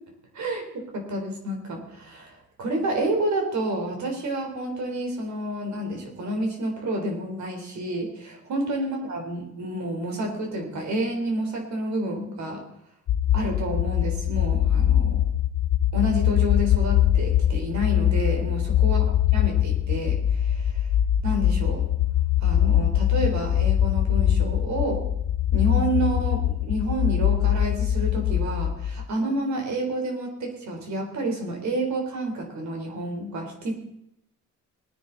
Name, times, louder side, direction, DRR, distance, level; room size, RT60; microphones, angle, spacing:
voice 1, 0.3-12.6 13.3-15.2 15.9-20.9 21.2-21.9 22.4-25.0 25.5-33.7, right 1 dB, 65° right, 2 dB, 4.1 m, -29 dB
sound 1, 13.1-29.1, left 11 dB, 60° left, 0.6 m, -22 dB
20.5 x 9.7 x 4.1 m, 0.77 s
cardioid pair, 90°, 30 cm